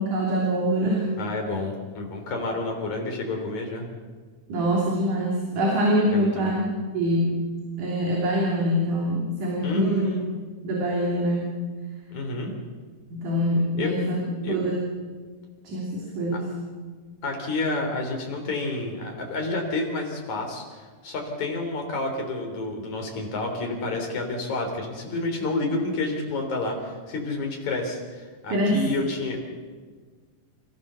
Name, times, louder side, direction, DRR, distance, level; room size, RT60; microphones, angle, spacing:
voice 1, 0.0-1.0 4.5-6.7 6.9-7.4 7.8-10.1 10.6-11.5 13.1-14.2 14.5-14.8 15.6-16.5 28.5-28.8, equal, 65° right, -2 dB, 4.6 m, -24 dB
voice 2, 1.2-3.9 6.1-6.6 9.6-10.3 12.1-12.6 13.8-14.0 14.4-14.6 16.3-16.4 17.2-29.6, left 2 dB, 55° left, 2 dB, 5.0 m, -29 dB
29.0 x 15.0 x 7.0 m, 1.5 s
omnidirectional pair, 3.9 m